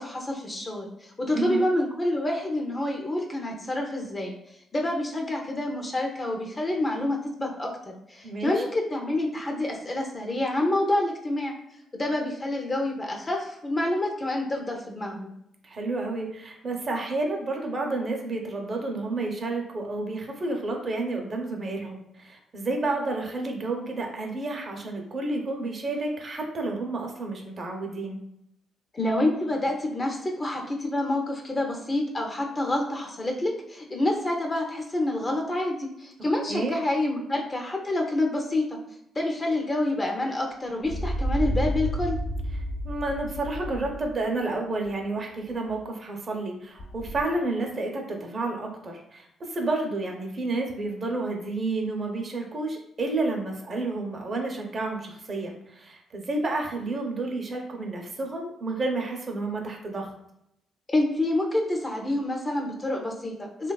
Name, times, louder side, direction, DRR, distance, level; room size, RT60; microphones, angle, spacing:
voice 1, 0.0-4.3 4.7-11.5 11.9-15.3 28.9-38.8 39.2-42.2 60.9-63.7, left 1 dB, 25° left, 1 dB, 0.5 m, -28 dB
voice 2, 1.3-1.7 8.2-8.6 15.6-28.2 36.5-36.8 42.8-60.1, right 2 dB, 40° right, 1 dB, 0.5 m, -30 dB
sound 1, 40.8-44.1 44.6-45.4 45.7-45.8 46.8-47.2, equal, 60° left, 0.9 m, -31 dB
2.8 x 2.2 x 2.2 m, 0.82 s
cardioid pair, 90°, 0 cm